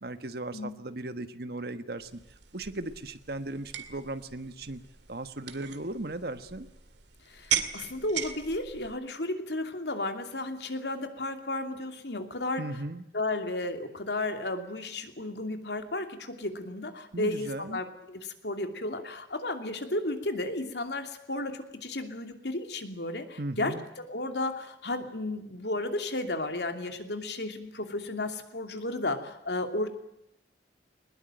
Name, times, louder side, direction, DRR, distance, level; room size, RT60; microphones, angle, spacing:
voice 1, 0.0-2.2 2.5-4.8 5.1-6.7 12.6-13.0 17.1-17.8 23.4-23.9, right 2 dB, 60° right, 10 dB, 1.4 m, -37 dB
sound 1, 2.0-9.0, right 9 dB, 80° right, 2.1 m, -38 dB
voice 2, 7.3-12.6 13.1-29.9, left 2 dB, 75° left, 6 dB, 2.8 m, -33 dB
21.5 x 20.5 x 9.1 m, 0.82 s
head